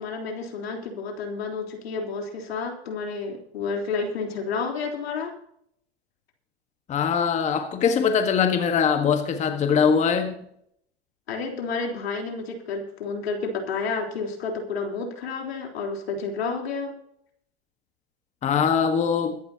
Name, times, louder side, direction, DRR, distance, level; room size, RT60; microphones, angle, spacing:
voice 1, 0.0-5.3 11.3-16.9, left 4 dB, 75° left, 2 dB, 3.8 m, -30 dB
voice 2, 6.9-10.3 18.4-19.4, left 6 dB, 20° left, 7 dB, 1.5 m, -22 dB
23.0 x 11.0 x 2.9 m, 0.70 s
hypercardioid pair, 115°, 31 cm